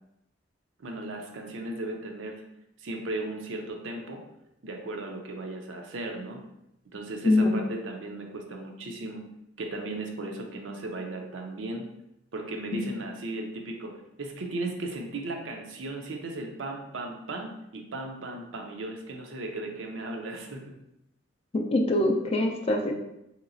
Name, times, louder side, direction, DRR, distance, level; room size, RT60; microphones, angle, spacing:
voice 1, 0.8-2.4 2.8-4.2 4.6-6.4 6.9-9.2 9.6-11.9 12.3-13.9 14.2-20.8, right 2 dB, 75° right, 2 dB, 0.5 m, -36 dB
voice 2, 7.2-7.6 12.7-12.8 21.5-22.9, left 2 dB, 30° left, 2 dB, 0.3 m, -24 dB
3.1 x 2.9 x 2.5 m, 0.85 s
head